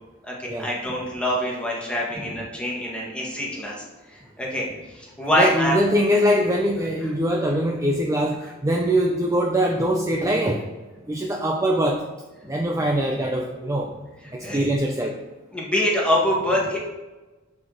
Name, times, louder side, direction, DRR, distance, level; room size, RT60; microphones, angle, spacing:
voice 1, 0.2-5.8 14.4-14.7 15.5-16.8, equal, 5° left, -3 dB, 1.6 m, -25 dB
voice 2, 5.4-10.6 11.1-12.0 12.5-13.9 14.3-15.2, equal, 15° right, 1 dB, 0.5 m, -22 dB
11.5 x 4.7 x 3.9 m, 1.2 s
head